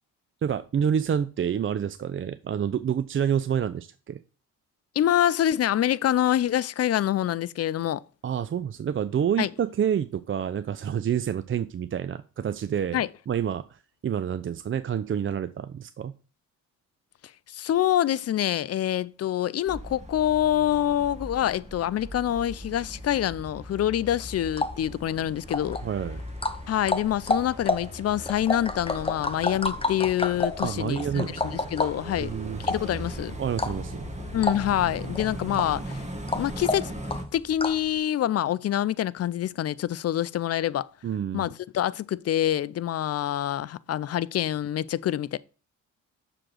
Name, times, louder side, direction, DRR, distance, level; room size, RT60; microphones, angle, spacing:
voice 1, 0.4-4.2 8.2-16.1 25.8-26.2 30.6-31.6 32.2-32.6 33.4-34.0 41.0-41.5, right 8 dB, 35° right, 0.5 m, -28 dB
voice 2, 5.0-8.0 9.4-9.5 12.9-13.1 17.5-25.8 26.7-32.3 32.6-33.4 34.3-36.0 36.3-36.9 37.3-40.9 41.3-45.4, left 11 dB, 40° left, 0.5 m, -26 dB
sound 1, 19.7-37.2, right 1 dB, 15° right, 1.8 m, -39 dB
sound 2, 24.3-37.9, left 3 dB, 15° left, 0.9 m, -31 dB
6.5 x 3.9 x 6.2 m
hypercardioid pair, 50°, 39 cm